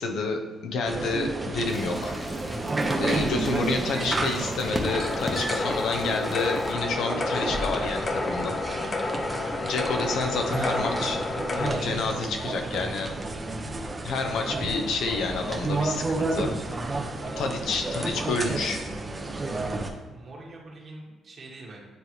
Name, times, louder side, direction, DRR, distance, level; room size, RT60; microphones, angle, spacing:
voice 1, 0.0-2.1 3.0-8.6 9.6-11.2 11.5-13.1 14.0-16.5 17.4-18.8, left 3 dB, 75° left, 3 dB, 0.7 m, -29 dB
sound 1, 0.8-19.9, right 2 dB, 25° right, 0.7 m, -31 dB
sound 2, 1.7-6.7, left 1 dB, 20° left, 1.0 m, -37 dB
sound 3, 4.8-11.7, left 3 dB, 40° left, 0.6 m, -30 dB
voice 2, 13.3-13.7 17.8-18.0 20.1-21.8, right 2 dB, 45° right, -2 dB, 1.6 m, -45 dB
9.4 x 3.3 x 3.1 m, 1.3 s
cardioid pair, 90°, 0 cm